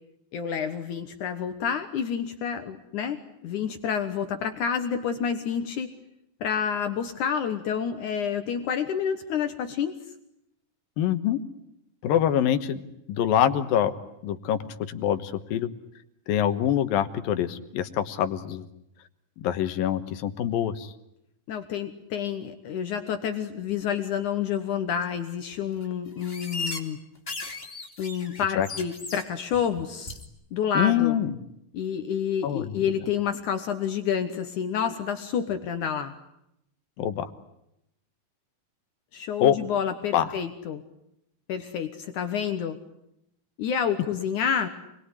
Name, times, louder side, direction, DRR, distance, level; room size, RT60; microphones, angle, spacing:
voice 1, 0.3-5.9 6.4-10.0 21.5-27.0 28.0-30.2 30.5-31.2 31.7-36.1 39.1-40.8 41.5-42.8 43.6-44.7, left 7 dB, 65° left, 8 dB, 2.5 m, -29 dB
voice 2, 11.0-11.4 12.0-12.8 13.1-13.9 14.2-14.6 14.9-15.7 16.3-18.7 19.4-20.9 28.6-28.7 30.7-31.3 32.4-32.7 37.0-37.3 39.4-39.6 40.1-40.3, left 10 dB, 85° left, 11 dB, 3.1 m, -25 dB
sound 1, 25.0-25.1 25.5-25.9 26.2-26.8 27.1-29.2 29.5-29.8 30.1-30.2, left 3 dB, 20° left, 2.4 m, -36 dB
28.0 x 21.5 x 9.9 m, 0.82 s
omnidirectional pair, 4.0 m